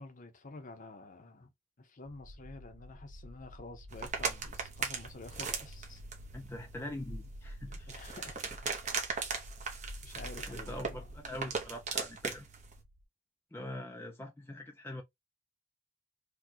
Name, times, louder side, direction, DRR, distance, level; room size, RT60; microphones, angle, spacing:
voice 1, 0.0-1.5 1.8-6.0 7.7-8.9 10.0-11.2, left 2 dB, 40° left, 0.8 m, -50 dB
sound 1, 2.1-13.0, equal, 80° right, 0.9 m, -50 dB
sound 2, 3.9-12.8, right 5 dB, 40° right, 0.9 m, -39 dB
voice 2, 6.3-7.9 10.5-12.5 13.5-15.0, left 1 dB, 10° left, 0.5 m, -43 dB
4.5 x 2.3 x 2.8 m
head